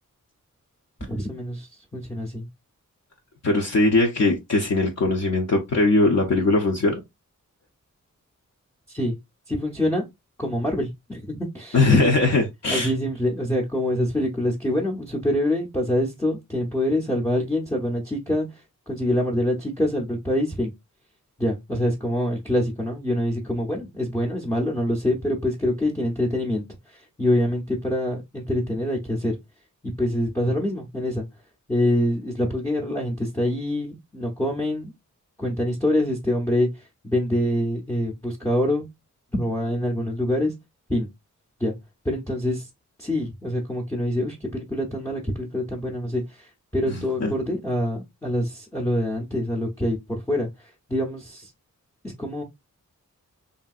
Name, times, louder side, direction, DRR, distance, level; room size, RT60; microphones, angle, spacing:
voice 1, 1.0-2.5 8.9-9.2 9.5-10.1 10.4-12.1 12.7-20.7 21.4-29.4 29.8-31.2 31.7-34.9 35.4-38.9 39.3-40.5 40.9-41.1 41.6-41.7 42.0-42.7 43.0-51.5 52.0-52.4, left 1 dB, 10° left, 0.6 m, -25 dB
voice 2, 3.4-7.0 11.7-12.9 46.9-47.3, left 2 dB, 55° left, 0.6 m, -20 dB
3.2 x 2.7 x 2.3 m
wide cardioid pair, 110°, 31 cm